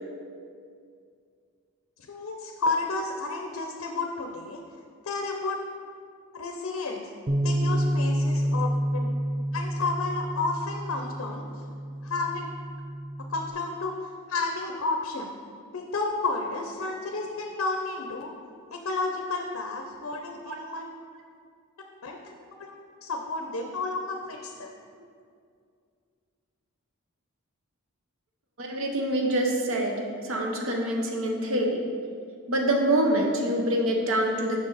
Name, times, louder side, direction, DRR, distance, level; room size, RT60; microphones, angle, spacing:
voice 1, 2.1-4.6 5.0-5.6 6.3-7.1 7.4-9.2 9.5-11.4 12.0-12.5 13.3-14.0 14.3-15.3 15.7-18.3 18.7-20.9 22.0-24.7, left 3 dB, 70° left, 3 dB, 0.5 m, -31 dB
Bass guitar, 7.3-13.5, equal, 20° right, 0.4 m, -29 dB
voice 2, 28.6-31.8 32.5-34.6, right 1 dB, 65° right, 1 dB, 0.9 m, -25 dB
6.6 x 5.5 x 4.0 m, 2.3 s
head